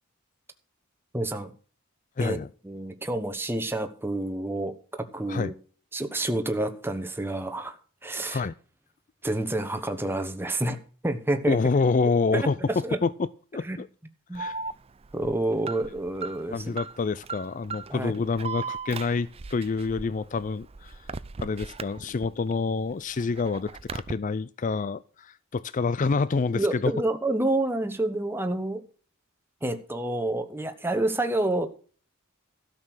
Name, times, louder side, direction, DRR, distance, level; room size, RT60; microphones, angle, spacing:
voice 1, 1.1-1.5 2.2-2.4 2.6-5.5 5.9-7.8 8.0-8.5 9.2-10.8 11.0-11.6 12.3-13.0 13.6-13.8 14.3-14.4 15.1-16.8 17.9-18.1 26.5-28.8 29.6-31.7, right 1 dB, 10° right, 7 dB, 1.2 m, -28 dB
voice 2, 2.2-2.5 5.3-5.5 8.1-8.5 11.5-12.6 13.0-13.1 13.5-13.9 14.3-14.6 16.5-21.0 21.4-26.9, left 4 dB, 40° left, 17 dB, 0.4 m, -27 dB
Alarm, 14.3-22.5 22.9-24.1, right 4 dB, 30° right, 0.5 m, -38 dB
13.0 x 6.7 x 6.2 m, 0.41 s
head